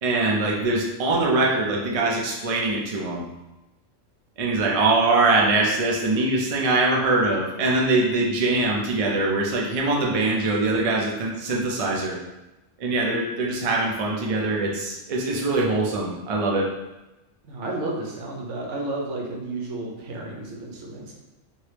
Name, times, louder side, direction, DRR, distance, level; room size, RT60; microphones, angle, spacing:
voice 1, 0.0-3.3 4.4-12.2 12.8-16.7, right 2 dB, 55° right, -2 dB, 0.4 m, -23 dB
voice 2, 17.4-21.1, right 2 dB, 75° right, -1 dB, 1.0 m, -32 dB
2.9 x 2.6 x 3.3 m, 1.0 s
omnidirectional pair, 1.3 m